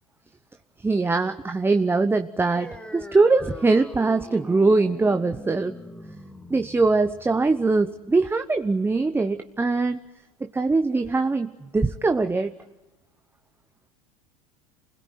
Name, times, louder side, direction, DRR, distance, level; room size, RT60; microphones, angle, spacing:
voice 1, 0.8-5.7 6.5-10.0 10.4-12.5, right 3 dB, 10° right, 8 dB, 1.0 m, -22 dB
sound 1, 2.4-9.4, left 1 dB, 5° left, 2.6 m, -43 dB
28.5 x 21.0 x 9.4 m, 1.0 s
hypercardioid pair, 85°, 18 cm